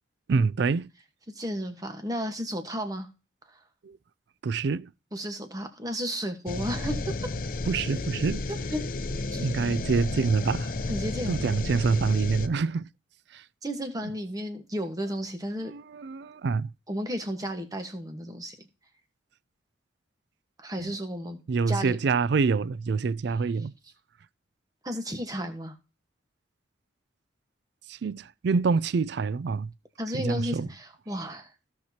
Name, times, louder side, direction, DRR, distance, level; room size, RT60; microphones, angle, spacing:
voice 1, 0.3-0.9 3.8-4.0 4.4-4.9 7.7-8.4 9.4-10.7 11.3-12.9 13.3-13.4 15.7-16.7 20.8-20.9 21.5-23.7 27.9-29.7 30.1-30.7, right 4 dB, 60° right, 0.4 m, -26 dB
voice 2, 1.3-3.1 5.1-7.2 8.5-8.8 9.3-9.5 10.9-11.4 13.6-15.7 16.9-18.5 20.6-21.4 21.7-22.0 24.8-25.7 30.0-31.5, equal, 20° right, 1.3 m, -33 dB
sound 1, 6.5-12.5, left 2 dB, 45° left, 0.6 m, -32 dB
16.0 x 5.9 x 2.8 m
head